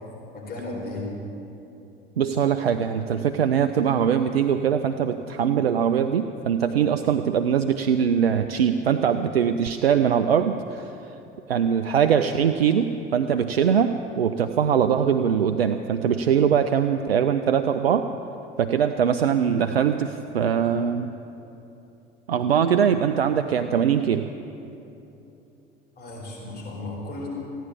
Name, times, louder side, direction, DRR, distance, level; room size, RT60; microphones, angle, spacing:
voice 1, 0.3-1.1 26.0-27.3, left 2 dB, 30° left, -3 dB, 4.3 m, -34 dB
voice 2, 2.2-10.9 11.5-18.1 18.6-21.1 22.3-24.3, right 8 dB, 85° right, 8 dB, 0.5 m, -22 dB
15.5 x 10.0 x 8.5 m, 2.9 s
figure-of-eight pair, 70°, 30 cm